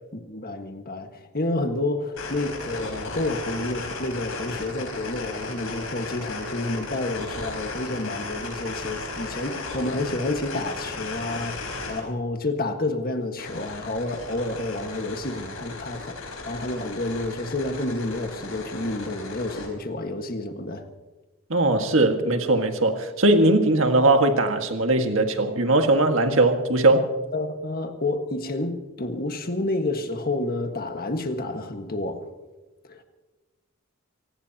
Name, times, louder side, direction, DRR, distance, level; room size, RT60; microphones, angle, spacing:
voice 1, 0.3-20.9 27.3-32.3 32.8-33.0, left 2 dB, 45° left, 1.6 m, -29 dB
sound 1, 2.2-12.0 13.4-19.7, left 3 dB, 75° left, 5.1 m, -35 dB
voice 2, 21.5-27.1, right 2 dB, 65° right, 1.8 m, -20 dB
25.0 x 19.0 x 2.9 m
head